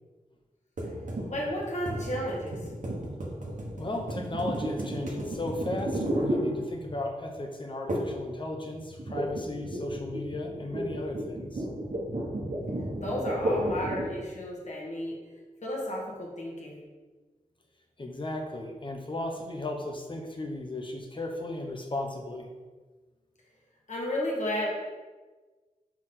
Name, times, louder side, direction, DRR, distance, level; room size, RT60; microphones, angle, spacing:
sound 1, 0.8-7.1 7.9-8.3 8.5-14.2, right 1 dB, 65° right, 1.2 m, -33 dB
voice 1, 1.3-2.5 13.0-15.2 15.6-16.8 23.9-24.7, left 1 dB, 55° left, -3 dB, 1.6 m, -32 dB
voice 2, 3.8-11.7 18.0-22.5, left 2 dB, 35° left, 2 dB, 1.0 m, -35 dB
5.9 x 4.7 x 3.8 m, 1.3 s
wide cardioid pair, 90°, 14 cm